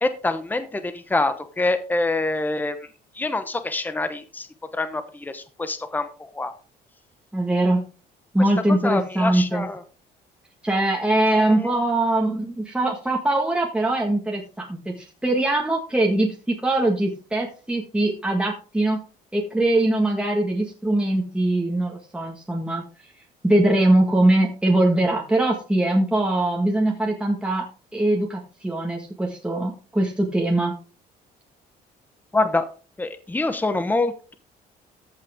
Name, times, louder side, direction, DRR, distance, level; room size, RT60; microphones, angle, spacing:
voice 1, 0.0-2.8 3.2-4.5 4.7-6.1 6.3-6.5 8.8-9.8 11.3-11.7 32.3-32.7 33.0-34.3, left 2 dB, 10° left, 10 dB, 0.9 m, -25 dB
voice 2, 7.3-7.8 8.3-9.6 10.6-19.0 19.3-22.8 23.4-27.7 27.9-30.7, right 1 dB, 5° right, -1 dB, 1.6 m, -22 dB
14.5 x 5.7 x 3.6 m, 0.36 s
cardioid pair, 110°, 17 cm